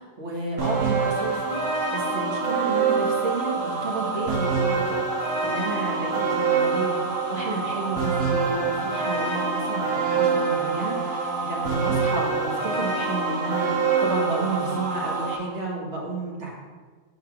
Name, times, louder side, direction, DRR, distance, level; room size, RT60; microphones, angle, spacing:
voice 1, 0.0-16.5, right 2 dB, 65° right, -3 dB, 1.7 m, -32 dB
sound 1, 0.6-15.4, right 4 dB, 85° right, 1.5 m, -25 dB
5.5 x 3.9 x 5.9 m, 1.4 s
omnidirectional pair, 1.3 m